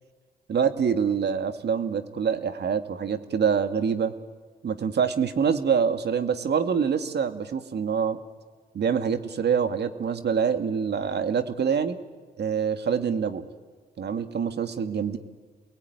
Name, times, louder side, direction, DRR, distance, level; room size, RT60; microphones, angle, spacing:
voice 1, 0.5-4.1 4.6-8.2 8.7-12.0 12.4-13.4 14.0-15.2, right 7 dB, 60° right, 8 dB, 2.2 m, -25 dB
29.0 x 21.5 x 9.6 m, 1.5 s
supercardioid pair, 50°, 19 cm